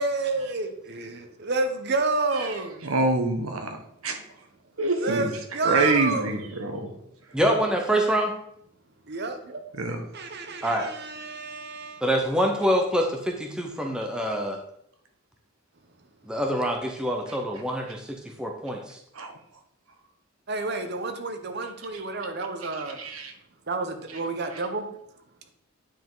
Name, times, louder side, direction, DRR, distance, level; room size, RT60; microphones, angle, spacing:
voice 1, 0.0-2.8 5.0-6.4 9.1-9.6 10.1-12.0 20.5-23.0 23.7-24.9, right 3 dB, 50° right, 7 dB, 0.9 m, -29 dB
voice 2, 2.3-3.8 4.0-4.2 4.8-5.4 5.6-6.9 9.8-10.0 13.5-13.6 19.1-19.4 21.9-22.0 22.6-23.3 24.5-24.6, right 2 dB, 70° right, 4 dB, 1.2 m, -27 dB
voice 3, 7.3-8.4 10.6-10.9 12.0-14.6 16.3-19.0, equal, 5° right, 1 dB, 0.8 m, -25 dB
9.3 x 5.0 x 3.9 m, 0.73 s
head